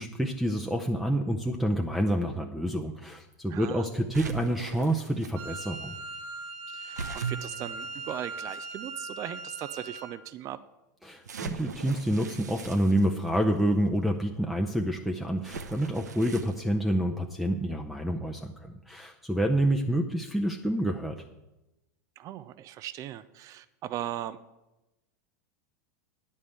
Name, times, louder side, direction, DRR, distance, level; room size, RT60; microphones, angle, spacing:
voice 1, 0.0-6.0 11.0-21.2, right 1 dB, ahead, 3 dB, 0.7 m, -28 dB
voice 2, 3.5-3.9 6.7-10.6 22.2-24.4, right 12 dB, 35° right, 14 dB, 0.5 m, -38 dB
sound 1, 4.1-5.3 6.9-8.6 9.3-9.4 11.2-13.6 15.4-16.6, right 6 dB, 85° right, 0.8 m, -39 dB
Wind instrument woodwind instrument, 5.3-10.2, right 3 dB, 65° right, 1.2 m, -40 dB
9.6 x 5.4 x 7.9 m, 0.97 s
hypercardioid pair, 95°, 9 cm